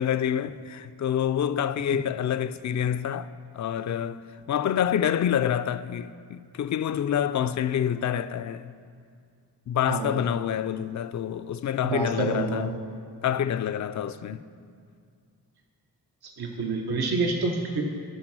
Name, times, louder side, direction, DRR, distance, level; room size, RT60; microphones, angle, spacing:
voice 1, 0.0-3.3 3.5-4.2 4.5-8.7 9.7-12.7 13.2-14.4, left 9 dB, 45° left, 0.4 m, -27 dB
voice 2, 9.9-10.2 11.8-12.7 16.4-17.8, right 3 dB, 70° right, 1.0 m, -28 dB
14.0 x 4.8 x 6.1 m
cardioid pair, 50°, 39 cm